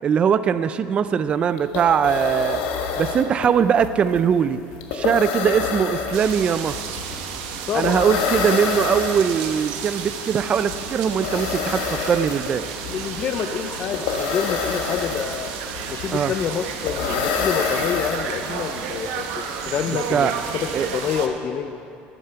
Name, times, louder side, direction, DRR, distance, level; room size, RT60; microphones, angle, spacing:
voice 1, 0.0-2.6 3.0-4.6 4.9-6.8 7.7-12.7 16.1-16.3 20.1-20.3 20.7-20.9, right 7 dB, 25° right, 13 dB, 0.3 m, -21 dB
sound 1, 1.3-1.4 1.6-18.7, left 5 dB, 85° left, 1.3 m, -28 dB
sound 2, 6.1-21.3, right 7 dB, 90° right, 1.0 m, -32 dB
voice 2, 7.7-8.1 12.9-15.5 15.9-19.2 19.7-20.7 20.9-21.8, left 8 dB, 35° left, 7 dB, 0.5 m, -27 dB
13.0 x 8.5 x 5.6 m, 2.5 s
cardioid pair, 150°, 4 cm